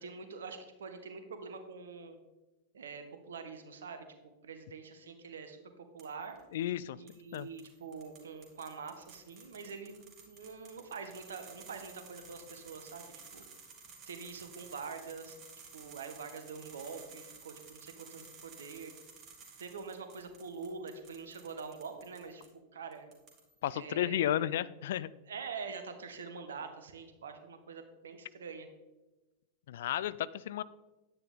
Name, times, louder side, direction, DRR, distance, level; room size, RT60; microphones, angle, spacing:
voice 1, 0.0-2.2 2.7-4.0 4.4-6.4 6.9-13.5 14.1-15.4 15.7-18.9 19.6-22.4 22.7-23.1 23.7-24.6 25.3-28.7, right 5 dB, 65° right, 7 dB, 1.3 m, -45 dB
sound 1, 6.0-6.4 7.1-22.5 22.9-23.7, right 5 dB, 35° right, 2.5 m, -54 dB
voice 2, 6.5-7.0 7.3-7.5 23.6-25.1 29.7-30.6, left 12 dB, 55° left, 18 dB, 0.3 m, -33 dB
10.0 x 9.7 x 3.7 m, 1.1 s
figure-of-eight pair, 90°, 0 cm